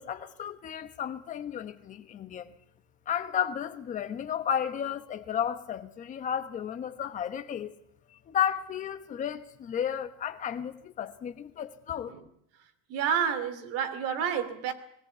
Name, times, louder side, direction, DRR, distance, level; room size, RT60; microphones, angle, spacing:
voice 1, 0.0-2.5 3.1-7.7 8.3-12.1, left 9 dB, 20° left, 1.4 m, -33 dB
voice 2, 12.9-14.7, right 8 dB, 40° right, 2.8 m, -29 dB
20.5 x 17.5 x 8.3 m
supercardioid pair, 160°, 37 cm